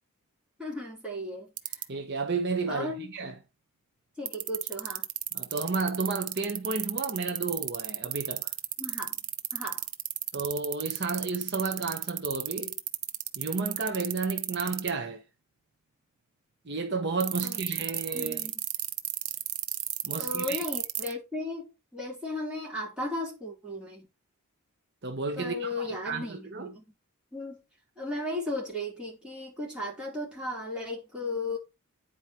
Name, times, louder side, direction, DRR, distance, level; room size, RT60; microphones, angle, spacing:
voice 1, 0.6-1.5 2.7-3.1 4.2-5.0 8.8-9.2 9.5-9.8 17.4-17.6 18.1-18.5 20.2-24.1 25.4-26.8 27.3-27.6 28.0-31.6, left 2 dB, 5° right, 3.6 m, -35 dB
sound 1, 1.6-1.8 4.3-14.9 17.2-21.1, right 13 dB, 85° right, 0.8 m, -31 dB
voice 2, 1.9-3.4 5.3-8.5 10.3-12.7 13.3-15.2 16.6-18.5 20.0-20.6 25.0-26.7, right 4 dB, 50° right, 1.1 m, -32 dB
9.4 x 4.4 x 4.4 m
head